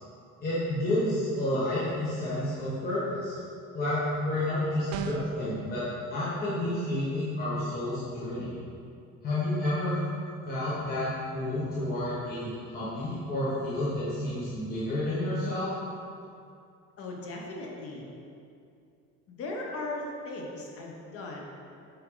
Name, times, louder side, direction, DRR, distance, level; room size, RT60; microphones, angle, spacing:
voice 1, 0.4-3.4 3.7-8.5 9.2-10.0 10.4-15.7, left 1 dB, 30° left, -10 dB, 1.5 m, -30 dB
sound 1, 4.9-5.5, right 7 dB, 55° right, 0.5 m, -35 dB
voice 2, 17.0-18.1 19.3-21.4, left 2 dB, 45° left, -1 dB, 1.1 m, -37 dB
7.9 x 4.7 x 3.9 m, 2.5 s
cardioid pair, 155°, 32 cm